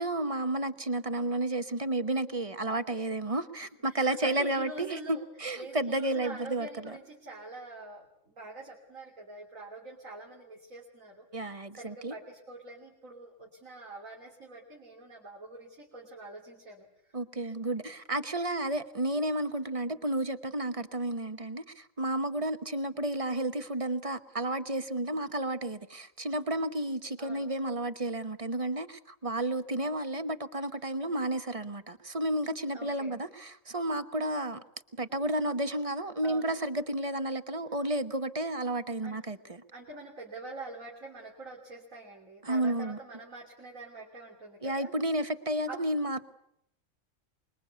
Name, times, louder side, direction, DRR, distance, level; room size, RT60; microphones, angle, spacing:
voice 1, 0.0-7.0 11.3-12.1 17.1-34.6 35.0-39.6 42.4-43.0 44.6-46.3, right 1 dB, 30° right, 1.0 m, -32 dB
voice 2, 3.6-5.2 5.6-17.2 26.8-26.9 27.2-27.5 32.7-33.2 36.2-36.5 39.0-39.2 39.7-44.9 45.7-45.8, right 2 dB, 90° right, 3.5 m, -46 dB
25.0 x 22.0 x 8.2 m
omnidirectional pair, 1.3 m